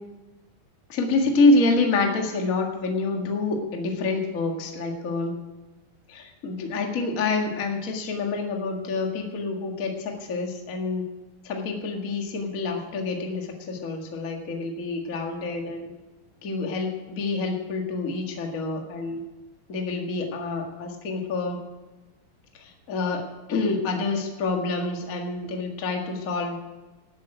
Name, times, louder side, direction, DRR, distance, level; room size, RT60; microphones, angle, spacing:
voice 1, 0.9-5.3 6.1-11.0 11.4-15.9 16.4-19.2 19.7-21.6 22.6-23.2 23.5-26.6, left 3 dB, 35° left, 2 dB, 1.6 m, -27 dB
13.0 x 8.3 x 9.1 m, 1.1 s
omnidirectional pair, 3.9 m